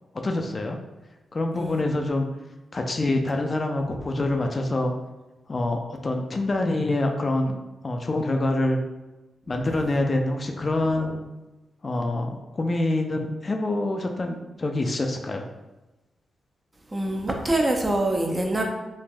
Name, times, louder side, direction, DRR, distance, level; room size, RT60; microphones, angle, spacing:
voice 1, 0.1-0.8 1.3-2.3 2.7-4.9 5.5-7.6 7.8-8.8 9.5-11.2 11.8-15.4, left 2 dB, 40° left, 3 dB, 0.3 m, -26 dB
voice 2, 16.9-18.6, right 1 dB, 25° right, 2 dB, 0.5 m, -25 dB
3.2 x 2.4 x 2.2 m, 1.0 s
cardioid pair, 55°, 0 cm